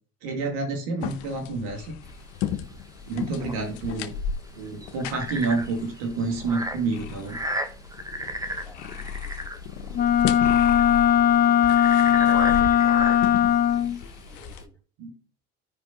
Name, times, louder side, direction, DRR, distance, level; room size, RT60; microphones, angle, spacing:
voice 1, 0.2-2.0 3.1-4.1 4.5-7.4 15.0-15.1, right 3 dB, 85° right, 2 dB, 2.4 m, -29 dB
sound 1, 1.0-14.6, left 8 dB, 85° left, 0.8 m, -35 dB
sound 2, 2.0-14.6, right 1 dB, 10° right, 1.0 m, -36 dB
voice 2, 8.5-9.0 9.2-10.8 12.3-13.0 14.3-14.8, left 2 dB, 5° left, 0 dB, 2.8 m, -53 dB
Wind instrument woodwind instrument, 9.9-14.0, left 10 dB, 30° left, 0.4 m, -19 dB
14.5 x 5.3 x 2.9 m, 0.36 s
supercardioid pair, 75°, 32 cm